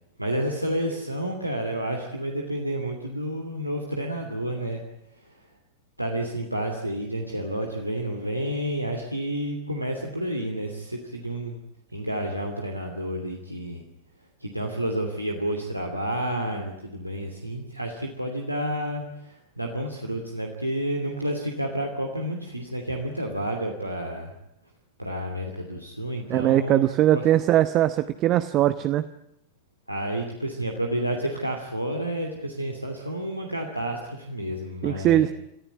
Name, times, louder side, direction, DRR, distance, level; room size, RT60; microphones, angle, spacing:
voice 1, 0.2-4.8 6.0-11.6 11.9-13.8 14.4-24.3 25.0-26.8 27.1-27.2 29.9-35.3, right 1 dB, 90° right, 1 dB, 2.8 m, -30 dB
voice 2, 26.3-29.1 34.8-35.3, right 13 dB, 35° right, 13 dB, 0.9 m, -21 dB
28.0 x 14.5 x 9.7 m, 0.84 s
figure-of-eight pair, 90°, 0 cm